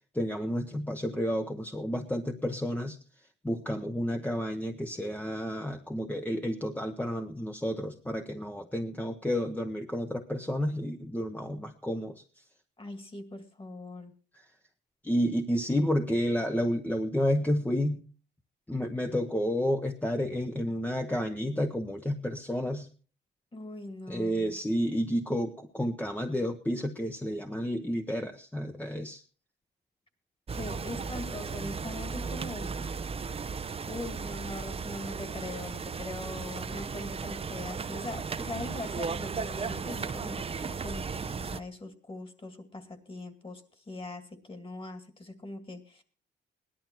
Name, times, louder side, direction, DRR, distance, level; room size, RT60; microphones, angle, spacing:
voice 1, 0.1-3.0 3.4-12.2 15.0-18.1 18.7-22.9 24.1-29.2, equal, 10° left, 5 dB, 1.0 m, -31 dB
voice 2, 12.8-14.1 23.5-24.6 30.5-33.1 33.9-46.0, left 2 dB, 25° left, 9 dB, 2.3 m, -41 dB
sound 1, 30.5-41.6, right 5 dB, 30° right, 0.7 m, -36 dB
17.0 x 11.5 x 4.5 m, 0.39 s
cardioid pair, 90°, 20 cm